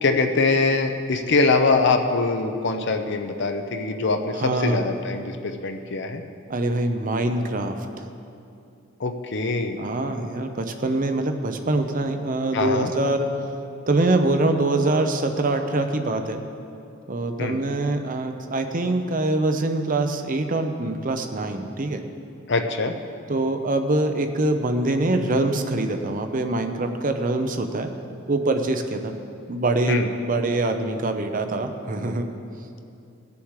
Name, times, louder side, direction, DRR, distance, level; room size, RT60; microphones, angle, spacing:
voice 1, 0.0-6.2 9.0-9.8 12.5-12.9 17.4-17.6 22.5-22.9 29.9-30.1, left 3 dB, 60° left, 6 dB, 0.8 m, -23 dB
voice 2, 4.3-4.9 6.5-8.0 9.8-13.3 13.9-16.4 17.1-22.0 23.3-27.9 28.3-29.1 29.5-32.3, right 2 dB, 40° right, 6 dB, 0.7 m, -24 dB
18.5 x 7.0 x 4.8 m, 2.6 s
head